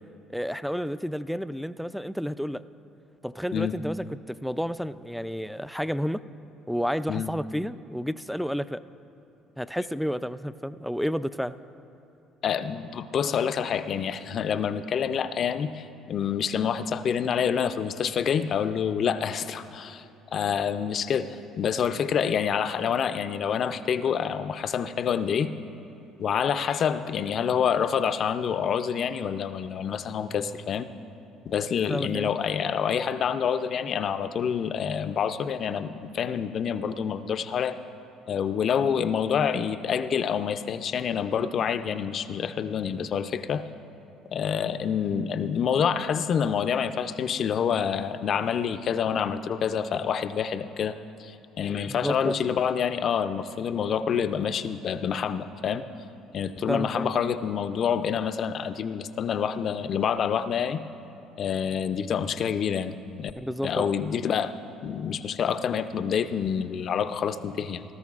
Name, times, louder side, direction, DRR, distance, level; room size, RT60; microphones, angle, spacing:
voice 1, 0.3-2.6 3.2-6.2 6.7-8.8 9.6-11.6 31.9-32.3 51.9-52.4 56.7-57.1 63.4-63.9, equal, ahead, 13 dB, 0.3 m, -31 dB
voice 2, 12.4-20.0 20.3-25.6 26.2-30.9 31.5-37.8 38.3-43.7 44.3-55.8 56.3-60.9 61.4-62.9 63.2-63.3 63.6-64.5 64.8-67.8, left 7 dB, 55° left, 11 dB, 0.5 m, -27 dB
18.0 x 13.5 x 2.4 m, 2.8 s
supercardioid pair, 80°, 0 cm